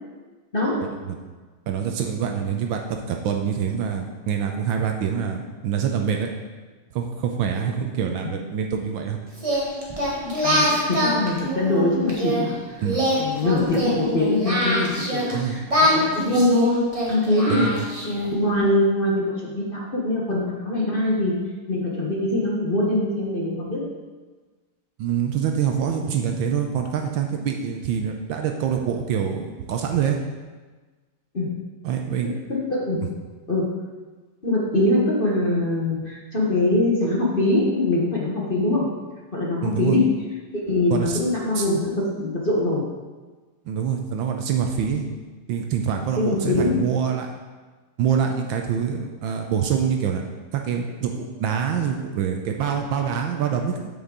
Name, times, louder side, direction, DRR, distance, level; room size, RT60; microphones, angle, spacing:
voice 1, 0.5-0.8 10.2-12.6 13.1-17.7 18.0-21.3 21.7-23.8 31.3-31.5 32.5-33.0 33.5-33.8 34.4-38.9 39.3-40.2 40.5-42.8 46.2-46.8, left 2 dB, 35° left, -3 dB, 1.0 m, -23 dB
voice 2, 1.7-6.3 6.9-9.2 12.8-13.0 15.3-15.6 17.5-17.9 25.0-30.2 31.8-32.3 39.6-40.0 40.9-41.2 41.5-41.7 43.6-45.0 45.5-47.3 48.0-53.9, right 7 dB, 75° right, 3 dB, 1.3 m, -25 dB
Singing, 9.4-12.4 12.8-15.3 15.7-18.3, equal, 20° right, 1.1 m, -24 dB
7.9 x 7.2 x 3.8 m, 1.3 s
omnidirectional pair, 2.4 m